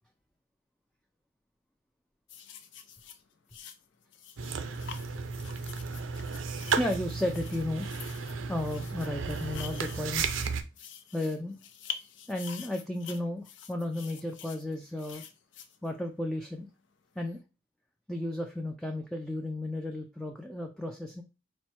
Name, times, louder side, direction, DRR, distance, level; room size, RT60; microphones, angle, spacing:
sound 1, 2.3-16.3 17.2-17.4, left 8 dB, 65° left, 0.5 m, -47 dB
sound 2, 4.4-10.6, right 5 dB, 80° right, 0.5 m, -34 dB
voice 1, 6.8-7.9 8.5-10.6 11.1-11.6 12.3-15.2 15.8-16.7 17.2-17.4 18.1-21.2, left 1 dB, 5° left, 2 dB, 0.3 m, -34 dB
4.3 x 2.2 x 4.2 m, 0.29 s
head